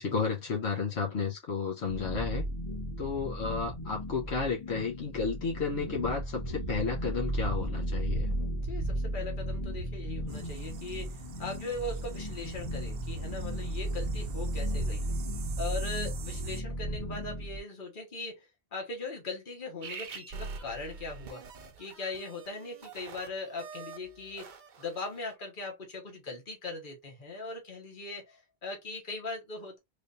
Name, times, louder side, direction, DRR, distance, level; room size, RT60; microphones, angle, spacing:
voice 1, 0.0-2.5 3.0-8.3, left 5 dB, 85° left, 1.2 m, -32 dB
sound 1, 1.9-17.6, right 1 dB, 35° left, 1.1 m, -35 dB
voice 2, 8.6-15.0 15.6-21.4 21.8-24.5 24.8-29.8, left 3 dB, 50° left, 1.5 m, -40 dB
sound 2, 10.3-16.6, right 7 dB, 85° right, 0.9 m, -46 dB
sound 3, 19.8-25.3, right 5 dB, 55° right, 0.7 m, -45 dB
3.5 x 3.1 x 2.5 m
omnidirectional pair, 1.1 m